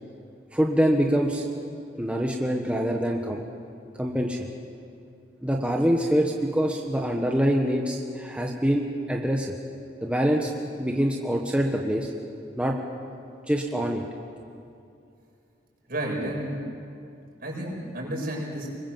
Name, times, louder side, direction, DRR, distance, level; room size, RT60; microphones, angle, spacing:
voice 1, 0.5-1.4 2.0-3.4 4.0-4.5 5.4-9.5 10.0-10.5 10.8-12.1 12.6-12.8 13.5-14.0, equal, 5° right, 0 dB, 1.4 m, -25 dB
voice 2, 15.9-16.6 17.4-18.7, right 1 dB, 55° right, -2 dB, 6.9 m, -31 dB
25.5 x 21.5 x 7.6 m, 2.5 s
head